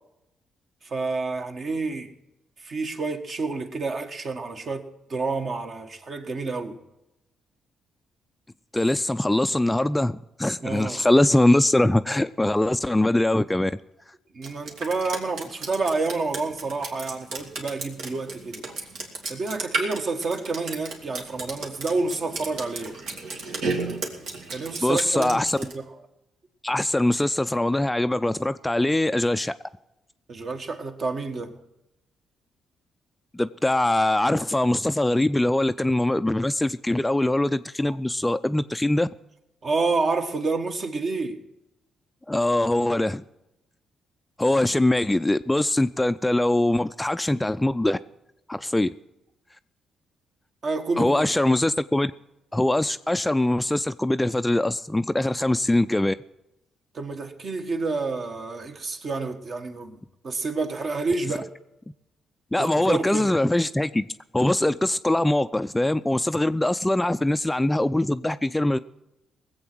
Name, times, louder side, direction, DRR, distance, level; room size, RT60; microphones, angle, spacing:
voice 1, 0.8-2.1 2.6-6.8 10.6-11.0 14.3-18.6 19.3-23.0 24.5-25.9 30.3-31.5 37.9-38.0 39.6-41.4 50.6-51.3 56.9-61.5 62.6-63.3, right 3 dB, 50° right, 1.6 m, -29 dB
voice 2, 8.7-13.7 24.8-25.6 26.6-29.6 33.3-39.1 42.3-43.2 44.4-48.0 48.5-48.9 51.0-52.1 52.5-56.1 62.5-64.1 64.3-68.8, left 1 dB, 10° left, 0.4 m, -22 dB
Drip, 14.4-25.7, right 3 dB, 80° right, 2.3 m, -33 dB
19.0 x 7.9 x 6.1 m
cardioid pair, 75°, 0 cm